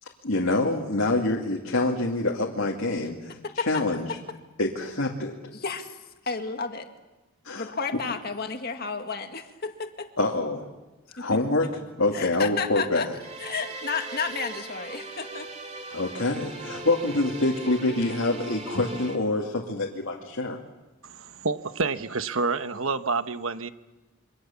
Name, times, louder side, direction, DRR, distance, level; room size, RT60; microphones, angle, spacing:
voice 1, 0.0-4.1 4.6-5.5 7.4-7.7 10.2-10.7 11.1-11.7 12.0-13.1 15.9-20.6, left 2 dB, 65° left, 0 dB, 2.4 m, -26 dB
voice 2, 3.4-3.8 5.5-6.0 6.2-6.9 7.5-10.1 11.2-11.3 12.1-13.1 13.4-15.5, left 5 dB, 45° left, 5 dB, 2.0 m, -32 dB
sound 1, 13.2-19.2, right 3 dB, 30° right, 2.4 m, -39 dB
voice 3, 21.0-23.7, right 4 dB, 70° right, 10 dB, 1.1 m, -28 dB
27.5 x 25.0 x 7.1 m, 1.1 s
head